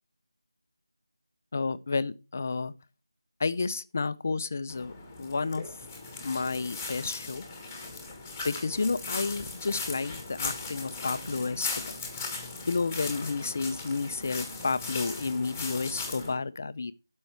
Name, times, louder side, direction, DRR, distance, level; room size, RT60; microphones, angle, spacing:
voice 1, 1.5-2.7 3.4-4.9 5.2-5.8 6.2-7.4 8.4-12.0 12.7-16.9, left 4 dB, 35° left, 0.5 m, -31 dB
sound 1, 4.7-16.3, left 3 dB, 10° left, 1.4 m, -38 dB
12.5 x 5.4 x 4.6 m
figure-of-eight pair, 170°, 2 cm